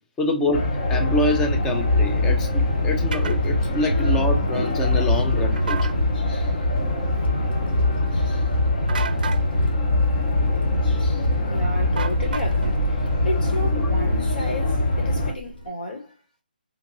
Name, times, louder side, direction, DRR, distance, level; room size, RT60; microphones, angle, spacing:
voice 1, 0.2-5.9, left 1 dB, 10° left, 0.5 m, -26 dB
sound 1, 0.5-15.3, left 2 dB, 45° left, 1.1 m, -22 dB
Wind, 1.5-15.7, right 2 dB, 80° left, 1.5 m, -38 dB
sound 2, 3.1-3.4 5.6-5.9 8.9-9.4 12.0-12.7, right 5 dB, 55° right, 0.5 m, -31 dB
voice 2, 6.1-6.6 8.1-8.5 10.8-16.2, left 1 dB, 65° left, 1.7 m, -33 dB
3.6 x 2.5 x 3.0 m
hypercardioid pair, 160°, 5 cm